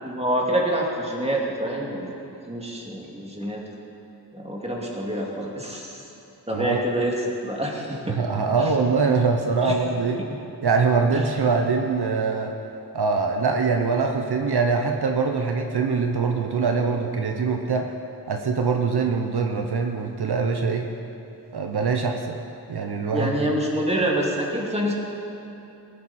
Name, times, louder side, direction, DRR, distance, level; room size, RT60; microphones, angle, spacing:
voice 1, 0.0-3.6 4.3-6.0 6.5-7.1 7.4-8.2 8.6-8.7 9.6-9.7 10.2-10.3 11.1-11.4 23.1-24.9, right 1 dB, 15° right, -2 dB, 2.3 m, -27 dB
voice 2, 6.5-6.9 8.1-10.2 10.6-12.5 12.9-17.9 18.3-20.9 21.5-22.4 22.7-23.3, right 4 dB, 75° right, 3 dB, 0.9 m, -23 dB
19.0 x 11.5 x 4.3 m, 2.8 s
wide cardioid pair, 80°, 39 cm